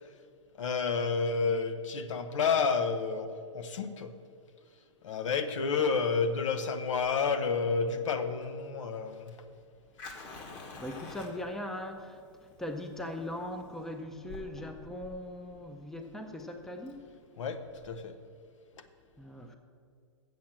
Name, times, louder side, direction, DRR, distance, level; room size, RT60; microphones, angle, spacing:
voice 1, 0.6-4.1 5.0-9.4 17.4-18.2, left 5 dB, 75° left, 9 dB, 0.9 m, -30 dB
Fire, 6.9-18.0, left 3 dB, 40° left, 1.7 m, -50 dB
voice 2, 10.2-17.0 19.2-19.6, left 1 dB, ahead, 5 dB, 0.5 m, -40 dB
7.6 x 7.5 x 7.4 m, 2.2 s
hypercardioid pair, 140°, 16 cm